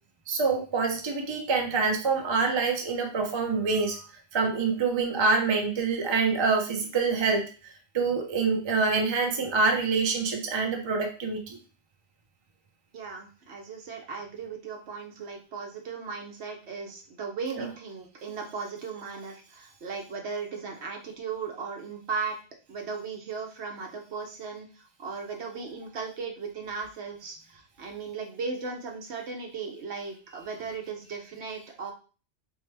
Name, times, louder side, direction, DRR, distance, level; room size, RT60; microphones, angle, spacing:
voice 1, 0.3-4.1 4.3-7.4 7.9-11.6 17.6-17.7, right 4 dB, 30° right, 3 dB, 0.5 m, -26 dB
voice 2, 12.9-22.4 22.7-31.9, right 5 dB, 70° right, 2 dB, 1.0 m, -37 dB
4.5 x 2.1 x 3.3 m, 0.36 s
omnidirectional pair, 1.2 m